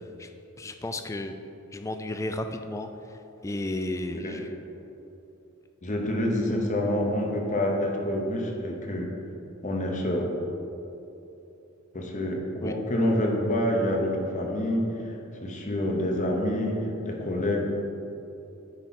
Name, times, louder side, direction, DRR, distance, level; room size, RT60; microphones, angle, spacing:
voice 1, 0.6-1.3 1.7-2.9 3.4-4.4 12.6-12.7, left 1 dB, 15° left, 7 dB, 0.3 m, -33 dB
voice 2, 4.1-4.5 5.8-9.1 9.6-10.3 11.9-15.1 15.4-17.7, left 1 dB, 35° left, 1 dB, 0.9 m, -27 dB
9.7 x 4.5 x 4.2 m, 2.9 s
head